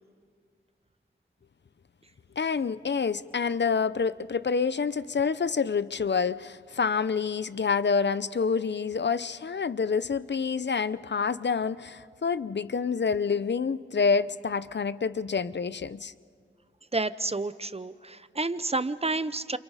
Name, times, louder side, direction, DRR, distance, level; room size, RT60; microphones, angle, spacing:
voice 1, 2.4-16.1, left 5 dB, 60° left, 0.6 m, -27 dB
voice 2, 16.9-19.6, right 3 dB, 30° right, 0.8 m, -30 dB
29.5 x 28.5 x 4.9 m
wide cardioid pair, 75°, 20 cm